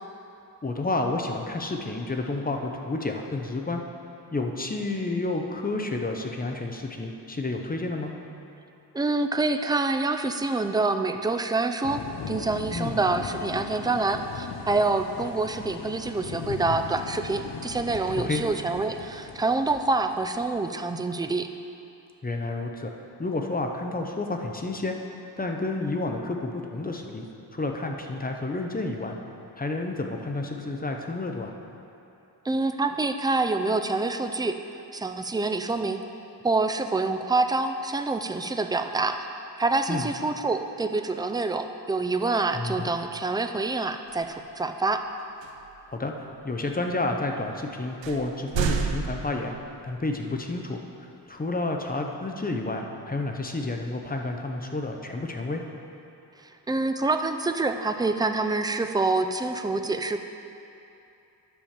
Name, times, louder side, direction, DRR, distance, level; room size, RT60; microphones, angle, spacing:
voice 1, 0.6-3.8 4.3-8.1 12.7-13.0 18.3-18.4 22.2-22.9 23.2-25.0 25.4-27.3 27.5-29.1 29.6-31.5 39.9-40.1 42.5-42.9 45.9-49.5 49.8-50.8 51.3-55.6, left 2 dB, 20° left, 3 dB, 0.8 m, -30 dB
voice 2, 8.9-21.5 32.4-36.0 36.4-39.3 39.6-45.0 56.7-60.2, right 3 dB, 10° right, 7 dB, 0.3 m, -26 dB
sound 1, 11.8-20.7, left 6 dB, 60° left, 0.8 m, -38 dB
sound 2, 44.1-44.4 45.4-45.8 46.5-46.6 47.4-47.5 48.0-49.9, right 6 dB, 90° right, 0.7 m, -30 dB
10.0 x 5.0 x 7.3 m, 2.8 s
wide cardioid pair, 115°, 44 cm